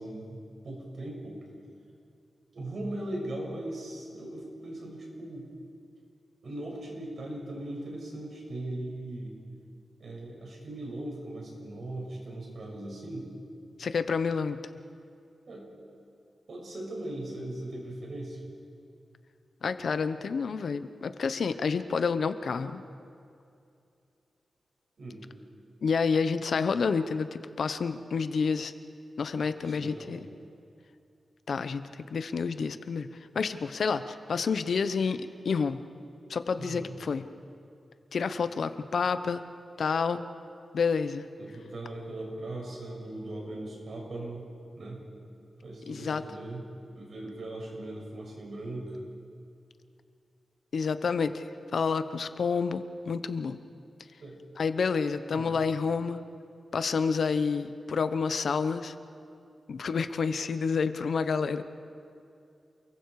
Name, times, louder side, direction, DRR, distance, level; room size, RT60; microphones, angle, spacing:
voice 1, 0.0-1.4 2.5-5.5 6.4-9.3 10.0-13.3 15.5-15.7 16.5-18.4 25.0-25.3 29.4-30.2 36.6-36.9 41.4-44.4 44.7-45.0 45.6-46.7 46.9-49.0 54.2-54.4 55.3-55.6, right 1 dB, 60° right, -2 dB, 6.5 m, -39 dB
voice 2, 13.8-14.6 19.6-22.8 25.8-28.7 29.2-30.2 31.5-33.1 33.3-35.8 36.3-37.2 38.1-39.4 39.8-40.3 40.7-41.3 45.9-46.2 50.7-53.6 54.6-56.2 56.7-58.9 59.7-61.6, left 5 dB, 70° left, 11 dB, 0.9 m, -29 dB
28.5 x 22.5 x 4.9 m, 2.5 s
wide cardioid pair, 140°, 0 cm